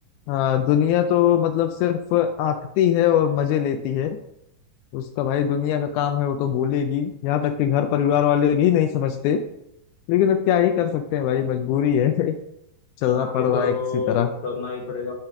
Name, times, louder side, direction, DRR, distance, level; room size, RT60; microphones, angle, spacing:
voice 1, 0.3-4.2 4.9-9.4 10.1-12.4 13.0-13.7 14.1-14.3, left 10 dB, 80° left, 7 dB, 1.8 m, -21 dB
voice 2, 13.1-15.1, left 4 dB, 60° left, 0 dB, 2.7 m, -29 dB
5.6 x 5.2 x 5.8 m, 0.81 s
omnidirectional pair, 3.9 m